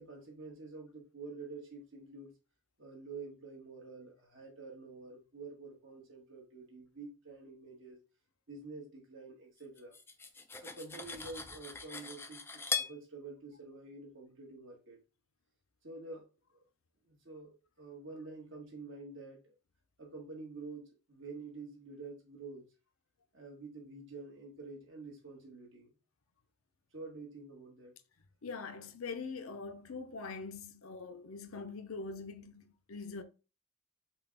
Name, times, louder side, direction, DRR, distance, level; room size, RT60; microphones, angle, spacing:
voice 1, 0.0-2.3 2.8-8.0 8.5-10.0 10.6-15.0 15.8-16.6 17.0-19.5 20.0-22.7 23.3-25.9 26.9-28.0, right 3 dB, 60° right, 1.7 m, -48 dB
Cutlery silverware, 9.8-13.0, left 5 dB, 10° left, 0.3 m, -40 dB
voice 2, 28.4-33.2, left 4 dB, 80° left, 0.6 m, -43 dB
5.5 x 2.4 x 4.0 m
head